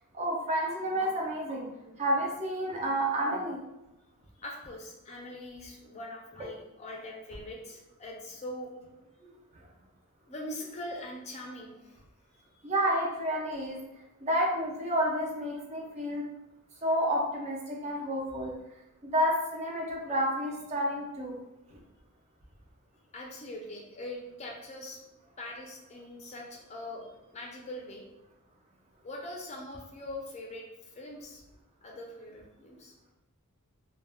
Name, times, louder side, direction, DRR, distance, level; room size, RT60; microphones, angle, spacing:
voice 1, 0.1-1.7 2.0-3.6 6.4-6.5 9.3-9.4 12.6-13.8 14.2-16.2 16.8-18.5 19.0-21.4 21.7-21.8, equal, 30° right, -1 dB, 0.4 m, -30 dB
voice 2, 4.3-8.7 10.3-12.0 12.3-12.7 23.1-25.0 25.4-28.1 29.0-31.4 31.8-32.9, left 1 dB, 30° left, -1 dB, 0.4 m, -42 dB
2.3 x 2.1 x 3.4 m, 0.95 s
head